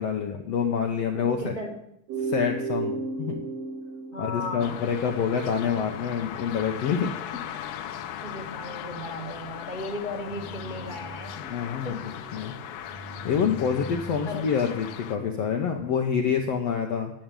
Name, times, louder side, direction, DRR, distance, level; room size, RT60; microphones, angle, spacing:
voice 1, 0.0-1.5 2.2-3.4 4.2-7.1 11.4-12.5 13.2-17.1, left 7 dB, 70° left, 2 dB, 1.6 m, -27 dB
voice 2, 1.1-1.7 4.1-4.8 8.2-11.4 11.8-12.0 14.2-14.5, left 2 dB, 20° right, 0 dB, 1.2 m, -36 dB
sound 1, 2.1-5.7, right 3 dB, 55° right, 2.5 m, -33 dB
sound 2, 4.6-15.2, left 10 dB, 85° left, 2.7 m, -38 dB
sound 3, 10.2-16.0, right 2 dB, 80° right, 5.5 m, -45 dB
11.0 x 7.9 x 8.9 m, 0.77 s
omnidirectional pair, 4.0 m